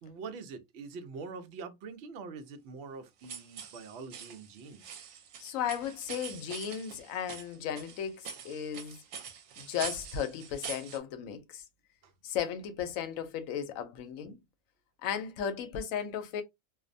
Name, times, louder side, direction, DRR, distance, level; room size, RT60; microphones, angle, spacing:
voice 1, 0.0-5.0 12.0-12.1, right 4 dB, 65° right, 0.7 m, -44 dB
sound 1, 3.2-11.0, right 7 dB, 85° right, 1.0 m, -44 dB
voice 2, 5.4-9.0 9.6-11.6 12.2-14.4 15.0-16.4, left 8 dB, 80° left, 1.0 m, -35 dB
2.5 x 2.1 x 2.5 m
omnidirectional pair, 1.4 m